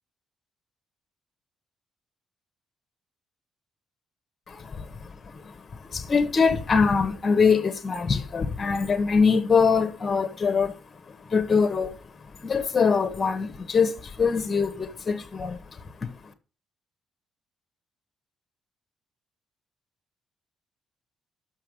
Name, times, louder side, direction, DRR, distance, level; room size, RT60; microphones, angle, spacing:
voice 1, 4.5-10.8 11.1-12.0 12.4-16.1, left 5 dB, 35° left, 1.3 m, -24 dB
6.2 x 5.7 x 6.5 m
cardioid pair, 90°, 0 cm